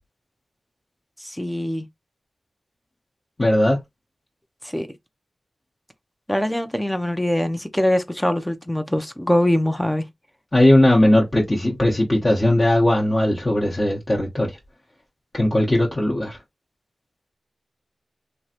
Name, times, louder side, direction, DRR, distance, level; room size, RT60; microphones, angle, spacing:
voice 1, 1.2-1.8 4.7-4.9 6.3-10.0, left 1 dB, 5° left, 0.5 m, -22 dB
voice 2, 3.4-3.8 10.5-14.5 15.3-16.4, left 1 dB, 25° left, 0.8 m, -18 dB
3.1 x 2.4 x 2.8 m
wide cardioid pair, 70°, 0 cm